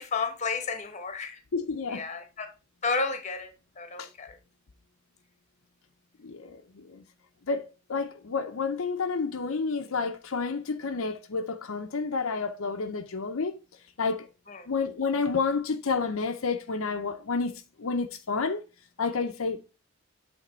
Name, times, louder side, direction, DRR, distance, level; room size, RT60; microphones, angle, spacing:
voice 1, 0.0-1.4 1.9-2.5 2.8-4.4 14.5-14.7, left 4 dB, 35° left, 1.0 m, -32 dB
voice 2, 1.5-2.0 4.0-4.1 6.2-7.0 7.5-7.6 7.9-13.6 14.0-14.3 14.7-18.6 19.0-19.6, left 4 dB, 70° left, 0.7 m, -30 dB
8.4 x 3.7 x 4.3 m
head